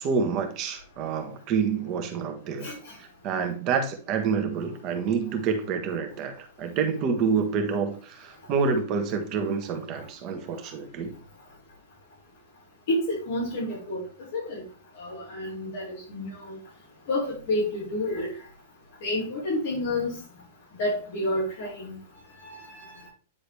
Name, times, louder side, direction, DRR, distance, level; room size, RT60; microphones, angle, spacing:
voice 1, 0.0-11.1, right 5 dB, 30° right, 5 dB, 1.3 m, -28 dB
voice 2, 2.6-3.0 12.9-14.0 14.3-14.6 15.0-16.6 17.1-18.3 19.0-20.2 20.8-22.0 22.4-23.0, left 1 dB, 60° left, -5 dB, 3.7 m, -30 dB
9.8 x 3.9 x 3.4 m, 0.39 s
supercardioid pair, 165°, 0 cm